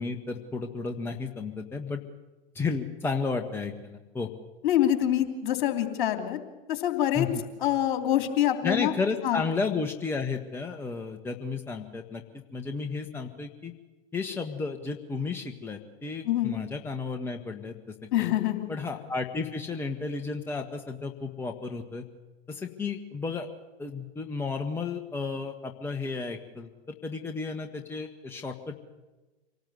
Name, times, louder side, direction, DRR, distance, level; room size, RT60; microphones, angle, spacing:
voice 1, 0.0-2.0 2.5-4.3 7.1-7.4 8.6-12.2 12.5-13.7 14.1-18.3 18.7-22.0 22.5-23.5 23.8-28.9, left 4 dB, 5° left, 4 dB, 1.4 m, -33 dB
voice 2, 4.6-6.4 6.7-7.3 7.6-8.9 9.2-9.4 16.3-16.6 18.1-18.7, left 12 dB, 50° left, 7 dB, 3.2 m, -25 dB
26.5 x 18.5 x 8.0 m, 1.2 s
figure-of-eight pair, 105°, 32 cm